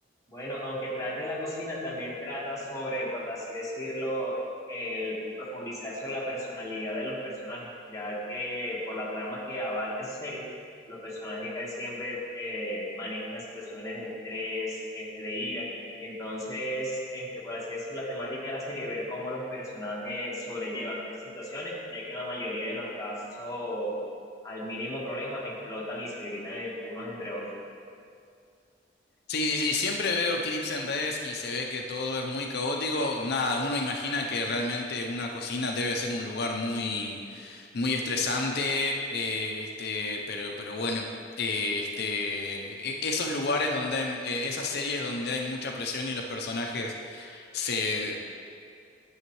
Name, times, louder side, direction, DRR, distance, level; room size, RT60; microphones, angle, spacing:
voice 1, 0.3-4.4 4.7-10.4 10.9-15.7 16.0-23.9 24.4-27.5, left 1 dB, 20° left, -5 dB, 1.4 m, -34 dB
voice 2, 29.3-41.1 41.4-48.2, left 3 dB, 60° left, 2 dB, 0.6 m, -30 dB
9.6 x 7.2 x 3.1 m, 2.3 s
head